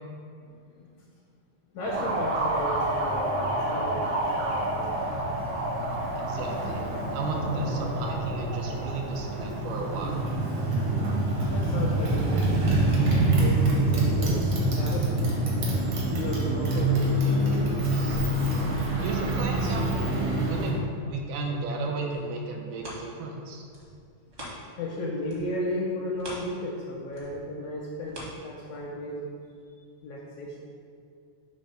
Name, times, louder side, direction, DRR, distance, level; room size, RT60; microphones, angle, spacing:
voice 1, 0.4-1.1 1.7-5.1 11.5-13.6 13.9-15.1 16.1-18.0 24.8-29.3 30.0-30.7, left 1 dB, 80° left, -2 dB, 1.7 m, -35 dB
Motorcycle, 1.8-20.8, right 1 dB, 60° right, 1.4 m, -26 dB
voice 2, 6.1-6.8 7.1-10.2 19.0-20.1 20.4-23.6, right 3 dB, 80° right, 1 dB, 2.1 m, -34 dB
sound 1, 22.0-25.0 25.2-29.1 29.6-29.7, equal, 45° right, 0.8 m, -45 dB
7.2 x 3.2 x 5.5 m, 2.3 s
omnidirectional pair, 3.8 m